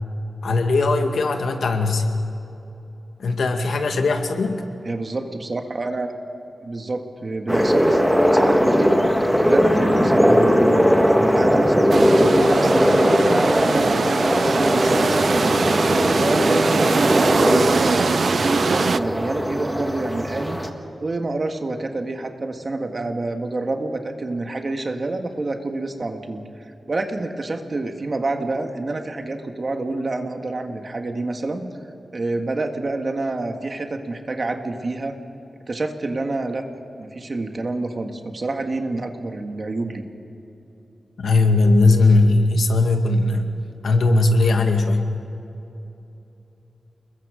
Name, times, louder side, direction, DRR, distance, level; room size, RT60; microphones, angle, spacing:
voice 1, 0.4-2.0 3.2-4.6 41.2-43.5 43.8-45.1, left 2 dB, 85° left, 4 dB, 2.1 m, -18 dB
voice 2, 4.8-6.1 6.6-8.0 8.3-9.1 9.4-15.7 16.1-20.6 21.0-26.4 26.9-31.7 32.1-35.2 35.7-36.6 37.0-40.1, right 2 dB, 35° right, 5 dB, 1.7 m, -27 dB
sound 1, 7.5-20.7, equal, ahead, 1.5 m, -19 dB
sound 2, 11.9-19.0, right 5 dB, 55° right, 0.4 m, -22 dB
29.0 x 21.5 x 5.1 m, 3.0 s
wide cardioid pair, 160°, 0 cm